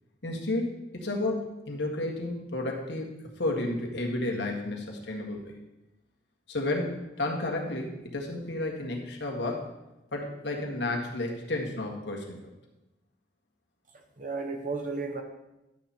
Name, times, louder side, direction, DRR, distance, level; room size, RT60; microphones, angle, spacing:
voice 1, 0.2-3.1 3.4-5.5 6.5-9.6 10.1-12.4, left 2 dB, 75° left, 0 dB, 1.8 m, -32 dB
voice 2, 13.9-15.2, right 4 dB, 45° right, 4 dB, 0.9 m, -34 dB
11.0 x 7.6 x 4.3 m, 0.95 s
head